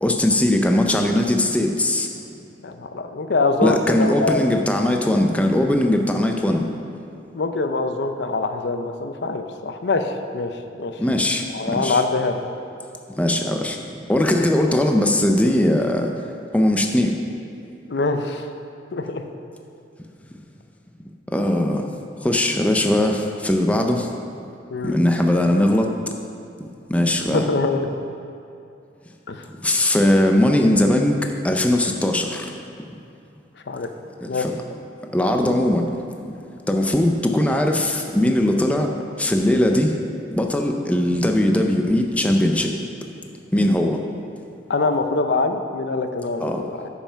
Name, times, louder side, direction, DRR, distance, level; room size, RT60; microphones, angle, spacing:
voice 1, 0.0-2.1 3.6-6.7 11.0-12.0 13.2-13.8 14.1-16.1 16.5-17.1 21.3-21.8 22.2-24.1 24.8-25.9 26.9-27.5 29.6-32.5 34.2-34.5 35.1-35.9 36.3-36.4 36.7-38.9 39.2-40.0 40.3-42.7 43.5-44.0 46.4-46.6, left 1 dB, 10° left, 3 dB, 0.5 m, -20 dB
voice 2, 2.6-4.7 7.3-10.5 10.8-10.9 11.5-12.4 17.9-18.5 18.9-19.2 23.0-23.1 24.7-25.0 27.3-27.9 29.3-29.4 33.7-33.9 34.3-34.5 44.7-46.9, left 3 dB, 70° left, 7 dB, 0.6 m, -24 dB
8.6 x 5.7 x 5.7 m, 2.7 s
head